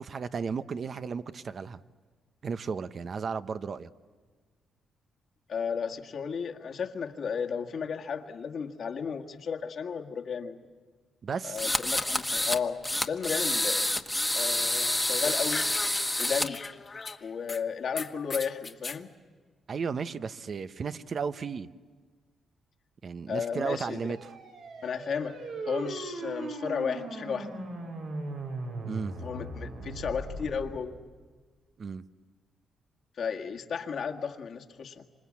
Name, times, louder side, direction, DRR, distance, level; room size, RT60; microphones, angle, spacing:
voice 1, 0.0-1.8 2.4-3.9 11.2-11.7 19.7-21.7 23.0-24.3 28.8-29.1 31.8-32.0, right 5 dB, 55° right, 12 dB, 0.9 m, -34 dB
voice 2, 5.5-10.6 11.4-13.9 14.3-15.7 16.2-16.6 17.2-19.1 23.3-24.0 24.8-25.4 25.7-27.7 29.2-31.0 33.2-35.0, left 6 dB, 65° left, 3 dB, 1.8 m, -34 dB
sound 1, 11.6-12.6 12.8-16.5, left 1 dB, 10° left, 1.3 m, -28 dB
sound 2, 15.2-17.6 18.0-19.0, left 4 dB, 35° left, 1.2 m, -38 dB
sound 3, 23.9-30.8, right 2 dB, 85° right, 4.8 m, -39 dB
26.5 x 26.0 x 8.6 m, 1.5 s
cardioid pair, 75°, 0 cm